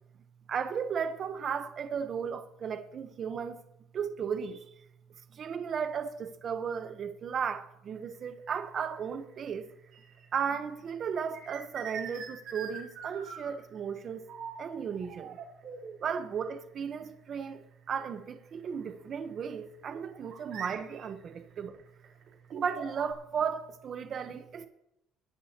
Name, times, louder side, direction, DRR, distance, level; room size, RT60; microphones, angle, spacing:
voice 1, 0.5-3.6 3.9-4.7 5.3-9.7 10.3-14.3 14.6-15.4 16.0-21.8 22.5-24.7, right 7 dB, 35° right, 0.9 m, -35 dB
sound 1, 8.0-8.2 8.9-10.4 10.7-13.8 14.3-14.6 14.9-16.1 17.0-17.1 17.5-17.6 18.2-18.3 19.9-23.1, right 7 dB, 50° right, 3.7 m, -43 dB
22.5 x 11.0 x 2.9 m
cardioid pair, 165°, 0 cm